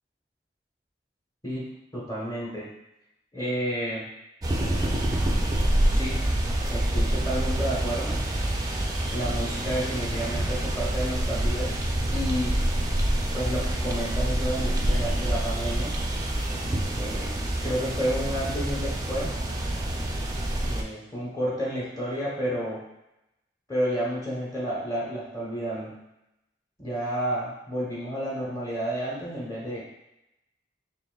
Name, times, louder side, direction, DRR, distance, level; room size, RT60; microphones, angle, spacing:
voice 1, 1.4-2.7 3.3-4.1 5.9-6.2 6.7-8.2 9.1-11.8 12.1-12.6 13.3-16.0 16.9-19.4 20.5-22.9 23.7-26.0 26.8-29.8, equal, 20° left, -6 dB, 0.9 m, -31 dB
sound 1, 4.4-20.8, right 1 dB, 20° right, 0.4 m, -27 dB
6.7 x 2.5 x 2.3 m, 0.89 s
head